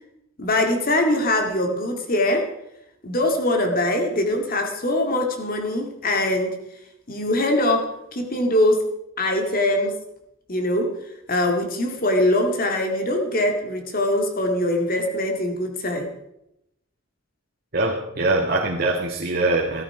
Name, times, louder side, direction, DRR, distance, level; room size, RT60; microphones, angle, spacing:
voice 1, 0.4-2.5 3.0-6.6 7.1-8.8 9.2-10.0 10.5-10.9 11.3-16.1, left 1 dB, 45° left, 4 dB, 2.1 m, -22 dB
voice 2, 17.7-19.8, right 2 dB, 45° right, 1 dB, 1.5 m, -23 dB
14.0 x 13.5 x 4.8 m, 0.82 s
head